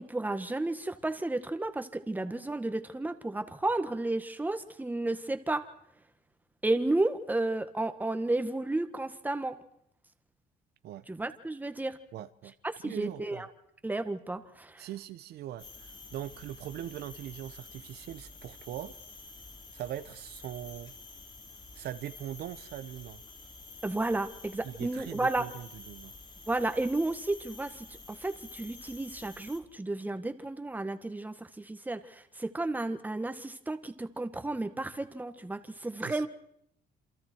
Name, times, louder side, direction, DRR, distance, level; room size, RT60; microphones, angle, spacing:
voice 1, 0.0-5.6 6.6-9.6 11.1-12.0 12.8-13.5 13.8-14.9 23.8-25.5 26.5-36.3, right 2 dB, 10° right, 1.9 m, -32 dB
voice 2, 12.1-12.5 12.8-13.4 14.8-18.9 19.7-20.9 21.7-23.2 24.6-26.1 36.0-36.3, right 12 dB, 70° right, 1.1 m, -41 dB
sound 1, 15.6-29.6, left 3 dB, 25° left, 3.8 m, -49 dB
28.0 x 27.5 x 4.7 m
cardioid pair, 110°, 17 cm